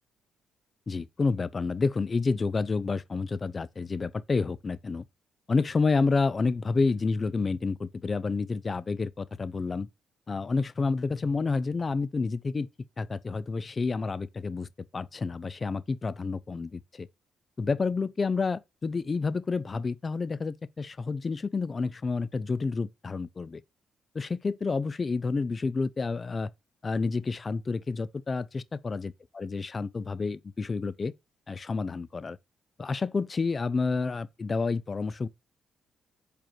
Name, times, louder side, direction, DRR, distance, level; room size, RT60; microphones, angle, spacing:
voice 1, 0.9-5.0 5.5-9.9 10.3-12.7 13.0-14.7 14.9-17.1 17.6-23.6 24.1-26.5 26.8-31.1 31.5-32.4 32.8-35.3, left 4 dB, 35° left, 0.4 m, -29 dB
5.1 x 4.4 x 4.4 m
cardioid pair, 90°, 0 cm